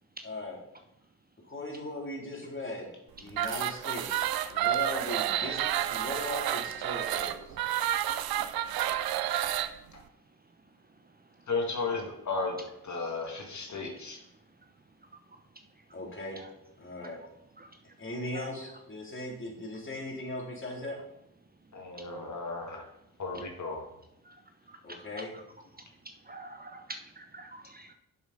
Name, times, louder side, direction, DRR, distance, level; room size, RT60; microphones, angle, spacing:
voice 1, 0.2-0.6 1.5-7.6 15.9-16.4 16.8-17.2 18.0-21.0 24.8-25.3, left 1 dB, 35° left, -1 dB, 3.3 m, -39 dB
sound 1, 3.3-9.7, right 12 dB, 80° right, 0.6 m, -30 dB
voice 2, 11.5-14.2 21.7-22.8 23.2-23.9, left 3 dB, 50° left, 1 dB, 2.0 m, -34 dB
voice 3, 26.3-27.9, right 2 dB, 25° right, 6 dB, 0.9 m, -46 dB
7.1 x 6.8 x 5.2 m, 0.80 s
supercardioid pair, 55°, 36 cm